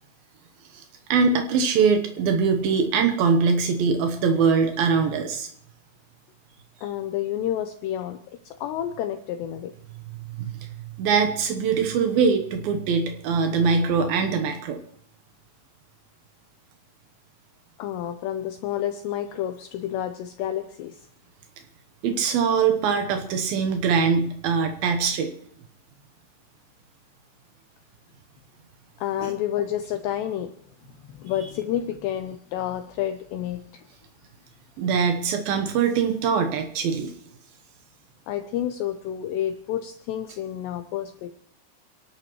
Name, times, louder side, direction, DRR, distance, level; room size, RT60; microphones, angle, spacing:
voice 1, 1.1-5.5 10.4-10.5 11.0-14.8 22.0-25.3 29.2-29.3 34.8-37.1, right 5 dB, 80° right, 5 dB, 2.1 m, -22 dB
voice 2, 6.8-8.2 8.5-9.7 17.8-21.0 29.0-30.5 30.9-33.8 38.3-41.3, left 11 dB, 85° left, 7 dB, 2.4 m, -29 dB
29.5 x 11.5 x 3.1 m, 0.66 s
omnidirectional pair, 5.9 m